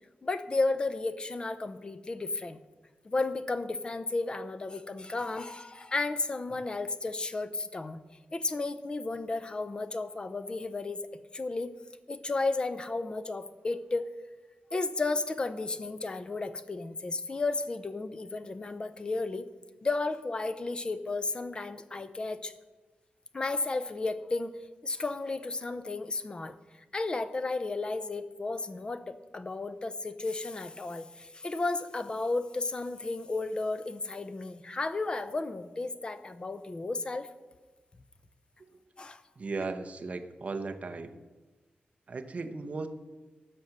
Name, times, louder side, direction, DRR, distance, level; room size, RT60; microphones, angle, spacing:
voice 1, 0.2-2.6 3.0-8.0 8.3-11.1 11.3-11.7 12.1-14.1 14.7-19.5 19.8-22.5 23.3-24.6 24.8-26.6 26.9-37.3 39.0-39.2, left 3 dB, 25° left, 11 dB, 0.6 m, -33 dB
voice 2, 39.4-41.2 42.1-42.9, right 3 dB, 40° right, 6 dB, 0.8 m, -36 dB
14.5 x 5.9 x 6.6 m, 1.2 s
wide cardioid pair, 175°, 4 cm